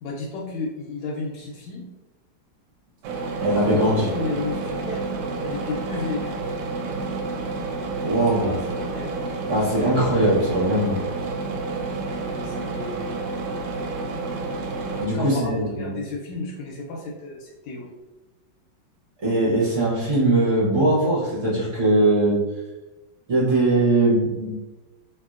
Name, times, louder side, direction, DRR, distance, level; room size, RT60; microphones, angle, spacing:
voice 1, 0.0-1.8 3.5-5.1 5.4-6.5 8.2-9.1 12.0-13.1 15.1-17.9, left 3 dB, 85° left, -3 dB, 1.4 m, -32 dB
sound 1, 3.0-15.1, right 3 dB, 75° right, 1.2 m, -30 dB
voice 2, 3.4-4.1 8.0-8.5 9.5-11.0 15.0-15.9 19.2-22.4 23.3-24.5, right 1 dB, 50° right, -7 dB, 0.9 m, -20 dB
2.9 x 2.8 x 2.4 m, 1.1 s
omnidirectional pair, 2.2 m